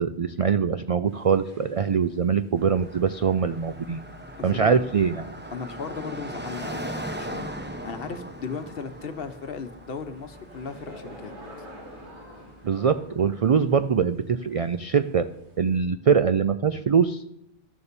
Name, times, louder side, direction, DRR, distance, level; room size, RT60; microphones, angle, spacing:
voice 1, 0.0-4.0 4.4-5.2 12.6-15.3 15.6-17.2, right 6 dB, 60° right, 11 dB, 0.3 m, -23 dB
sound 1, 1.1-15.8, equal, 90° right, 4.3 m, -50 dB
Car passing by, 2.6-13.7, right 1 dB, 10° right, 0.8 m, -40 dB
voice 2, 4.4-4.7 5.5-6.9 7.1-7.6 7.8-11.3, left 5 dB, 60° left, 9 dB, 1.1 m, -36 dB
13.0 x 7.0 x 6.7 m, 0.79 s
omnidirectional pair, 1.1 m